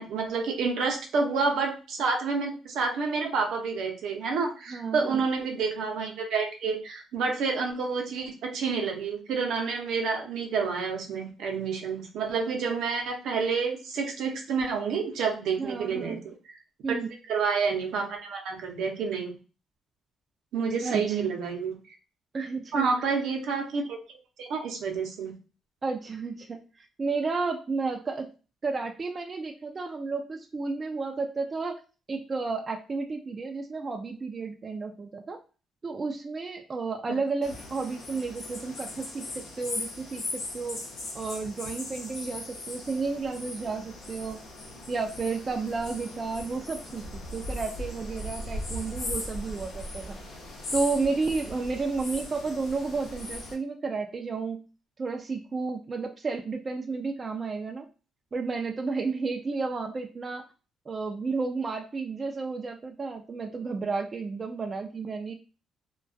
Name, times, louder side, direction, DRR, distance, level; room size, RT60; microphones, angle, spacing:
voice 1, 0.0-16.2 16.5-16.6 17.3-19.3 20.5-21.8 22.7-24.0 24.4-25.3, right 5 dB, 80° right, 2 dB, 0.6 m, -29 dB
voice 2, 4.7-5.2 15.6-16.2 16.8-17.1 20.8-21.3 22.3-23.1 25.8-28.3 28.6-31.8 32.1-35.4 35.8-40.8 41.1-44.4 44.9-50.2 50.7-54.6 55.0-57.9 58.3-60.5 60.9-65.3, right 4 dB, 35° right, 4 dB, 0.3 m, -32 dB
sound 1, 37.4-53.5, left 1 dB, 85° left, 0.8 m, -38 dB
2.2 x 2.2 x 2.5 m, 0.34 s
cardioid pair, 90°, 0 cm